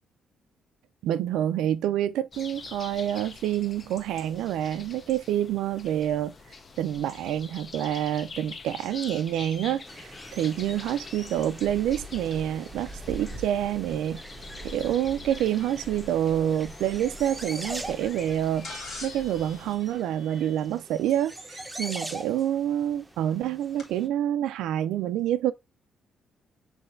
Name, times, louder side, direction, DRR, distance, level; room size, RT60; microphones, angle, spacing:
voice 1, 1.0-6.3 6.8-14.2 14.6-18.7 19.0-25.5, right 11 dB, 85° right, 0.3 m, -27 dB
sound 1, 2.3-19.8, left 4 dB, 40° left, 0.6 m, -45 dB
sound 2, 9.9-24.1, right 1 dB, 10° right, 0.7 m, -42 dB
sound 3, 18.6-20.9 22.5-22.6 23.8-23.9, left 2 dB, 70° left, 1.9 m, -42 dB
5.8 x 3.2 x 2.6 m
cardioid pair, 90°, 0 cm